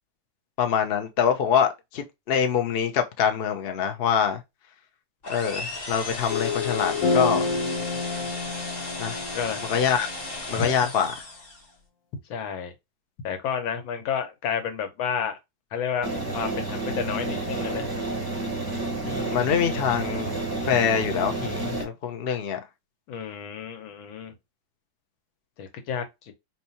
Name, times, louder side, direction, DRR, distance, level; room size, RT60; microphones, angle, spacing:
voice 1, 0.6-4.4 5.3-7.5 9.0-9.2 9.6-10.1 10.5-11.1 19.0-20.3 20.6-22.6, left 7 dB, 70° left, 0.5 m, -25 dB
sound 1, 5.2-11.7, left 2 dB, 35° left, 1.2 m, -36 dB
sound 2, 6.3-10.7, left 3 dB, 55° left, 1.2 m, -29 dB
voice 2, 10.5-10.9 12.3-12.7 13.2-15.4 15.7-16.1 16.3-17.9 23.1-24.3 25.6-26.3, left 7 dB, 85° left, 1.7 m, -31 dB
sound 3, 16.0-21.8, right 2 dB, 25° right, 0.5 m, -30 dB
4.5 x 3.0 x 2.7 m
omnidirectional pair, 2.1 m